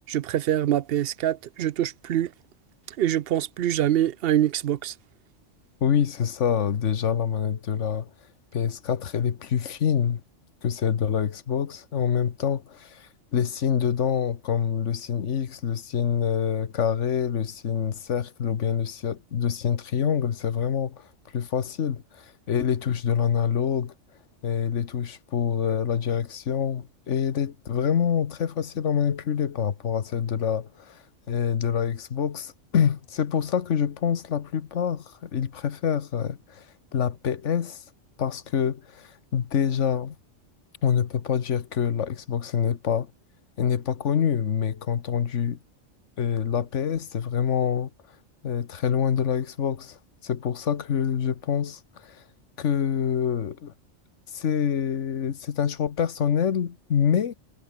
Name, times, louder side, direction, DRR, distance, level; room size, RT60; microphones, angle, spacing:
voice 1, 0.1-2.3 3.0-4.9, right 11 dB, 60° right, 0.7 m, -24 dB
voice 2, 5.8-8.1 8.5-10.2 10.6-21.1 21.3-23.9 24.4-36.7 36.9-37.8 38.2-40.2 40.8-43.1 43.6-45.6 46.2-47.9 48.4-52.2 52.6-53.7 54.3-57.3, left 8 dB, 70° left, 1.4 m, -26 dB
omnidirectional pair, 1.3 m